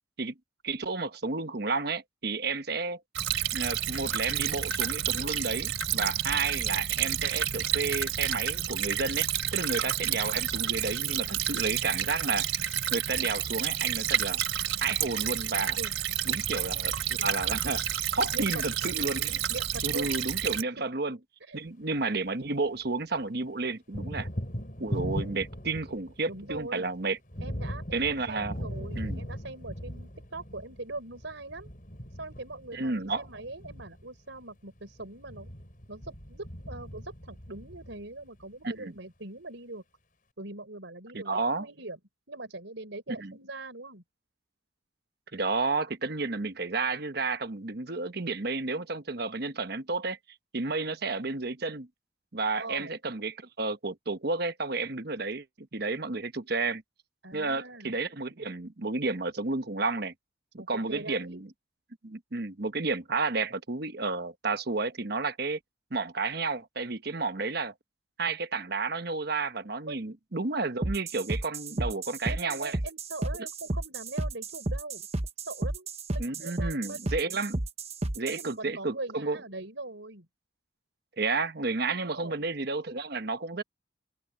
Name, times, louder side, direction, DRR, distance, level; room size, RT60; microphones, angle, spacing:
voice 1, 0.6-3.0 3.5-12.5 12.9-14.4 14.8-15.8 16.2-17.8 18.1-19.4 19.8-21.2 21.5-24.3 24.8-27.2 27.9-28.6 29.0-29.2 32.7-33.3 38.6-38.9 41.1-41.6 43.2-43.3 45.3-50.2 50.5-51.9 52.3-56.8 57.3-60.1 60.5-61.5 62.0-65.6 65.9-67.7 68.2-72.8 76.2-77.6 78.1-79.4 81.2-83.6, right 3 dB, 55° right, 1.1 m, -31 dB
Stream / Trickle dribble, 3.2-20.6, right 9 dB, 90° right, 3.4 m, -30 dB
voice 2, 18.3-18.6 19.5-20.1 20.6-20.8 21.4-21.6 26.3-26.9 27.4-31.7 32.2-35.5 35.9-39.8 40.4-42.0 42.3-44.0 52.5-52.9 57.2-58.0 60.6-61.4 69.9-70.0 72.3-75.1 75.5-77.2 78.3-80.3 81.9-82.4, right 2 dB, 70° right, 4.9 m, -41 dB
Thunder, 21.7-22.9 23.2-38.4, equal, 45° left, 5.9 m, -39 dB
sound 1, 70.8-78.5, right 2 dB, 30° right, 1.0 m, -33 dB
head